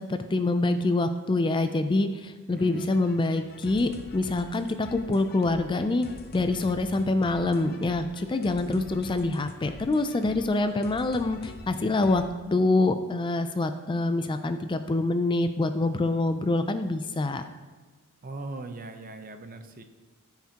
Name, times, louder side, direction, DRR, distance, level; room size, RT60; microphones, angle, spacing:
voice 1, 0.0-6.1 6.3-17.4, left 2 dB, 20° left, 9 dB, 0.4 m, -26 dB
voice 2, 2.5-3.0 18.2-19.8, right 2 dB, 40° right, 7 dB, 0.7 m, -40 dB
sound 1, 2.6-12.3, left 2 dB, 45° left, 0.7 m, -45 dB
14.5 x 5.8 x 2.9 m, 1.4 s
head